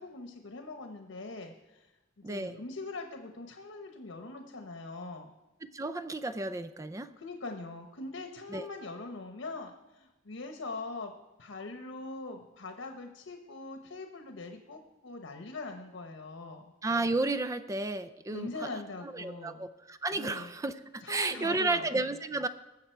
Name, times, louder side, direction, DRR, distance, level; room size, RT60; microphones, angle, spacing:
voice 1, 0.0-1.9 2.2-5.3 7.2-11.1 11.4-16.7 18.3-19.7 20.2-20.5 21.0-22.0, left 3 dB, 90° left, 5 dB, 1.0 m, -42 dB
voice 2, 2.2-2.6 5.7-7.1 8.5-8.6 16.8-18.7 19.0-22.5, right 2 dB, 15° right, 11 dB, 0.4 m, -32 dB
19.5 x 7.4 x 4.5 m, 1.0 s
head